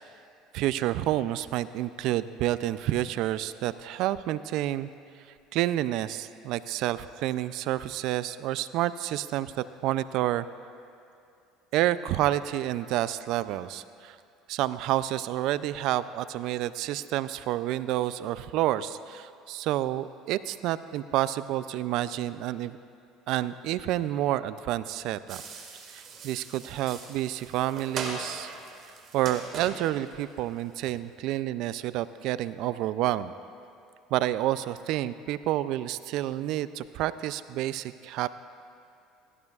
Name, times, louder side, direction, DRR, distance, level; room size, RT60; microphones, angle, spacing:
voice 1, 0.5-4.9 5.5-9.5 9.8-10.5 11.7-14.2 14.5-22.8 23.3-25.4 25.9-28.5 29.1-33.3 34.1-38.3, right 14 dB, 65° right, 15 dB, 0.3 m, -29 dB
sound 1, 25.3-31.0, right 4 dB, 50° right, 1.8 m, -41 dB
16.0 x 15.5 x 2.4 m, 2.5 s
supercardioid pair, 100°, 0 cm